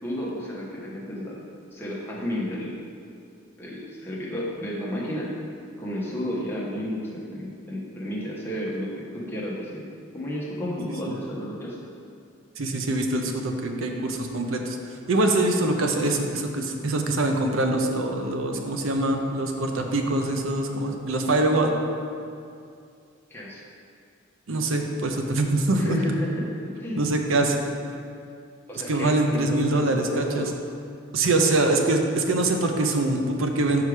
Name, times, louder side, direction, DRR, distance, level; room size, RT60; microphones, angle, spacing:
voice 1, 0.0-1.4 1.7-2.8 3.6-5.3 5.8-9.9 10.1-11.8 23.3-23.6 25.7-27.0 28.7-30.5, equal, 10° left, -6 dB, 1.1 m, -32 dB
voice 2, 12.6-14.8 15.1-21.7 24.5-26.0 26.9-27.6 28.9-30.5 31.1-33.8, right 2 dB, 70° right, 3 dB, 0.6 m, -24 dB
5.5 x 4.8 x 4.9 m, 2.4 s
head